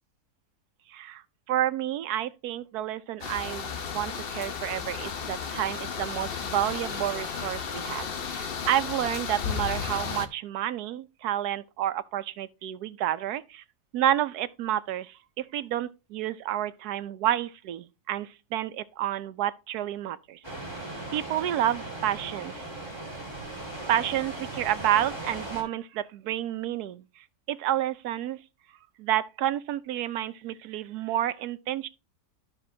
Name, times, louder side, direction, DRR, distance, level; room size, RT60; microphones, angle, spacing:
voice 1, 0.9-1.2 1.5-13.6 13.9-20.4 21.1-22.7 23.9-28.4 29.0-31.9, right 12 dB, 75° right, 1.2 m, -30 dB
sound 1, 3.2-10.3, left 6 dB, 45° left, 0.9 m, -34 dB
sound 2, 20.4-25.6, right 2 dB, 15° left, 2.4 m, -38 dB
12.5 x 6.0 x 2.7 m
omnidirectional pair, 1.7 m